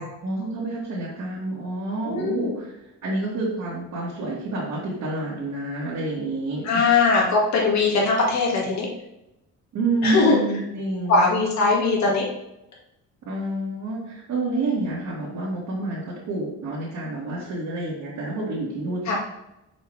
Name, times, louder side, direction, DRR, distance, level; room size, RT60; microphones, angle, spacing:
voice 1, 0.2-2.7 3.0-6.8 9.7-11.3 13.3-19.2, right 2 dB, 70° right, -7 dB, 2.1 m, -28 dB
voice 2, 2.0-2.5 6.6-8.9 10.0-10.4 11.1-12.2 19.1-19.2, left 4 dB, 65° left, -3 dB, 2.1 m, -20 dB
5.9 x 4.9 x 3.4 m, 0.88 s
cardioid pair, 90°, 30 cm